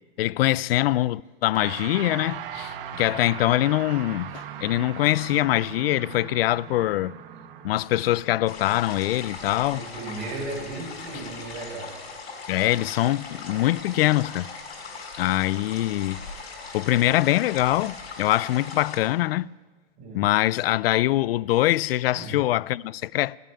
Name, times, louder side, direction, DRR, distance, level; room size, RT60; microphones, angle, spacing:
voice 1, 0.2-7.1 7.6-9.9 12.5-14.5 15.2-16.2 16.7-19.5 20.1-23.4, left 15 dB, 70° left, 0.5 m, -23 dB
sound 1, 1.5-11.0, right 9 dB, 60° right, 1.4 m, -40 dB
sound 2, 8.5-19.0, left 4 dB, 90° left, 5.5 m, -40 dB
voice 2, 9.7-11.9 20.0-20.2 22.1-22.4, right 2 dB, 25° right, 6.6 m, -35 dB
15.5 x 9.4 x 9.2 m
supercardioid pair, 145°, 31 cm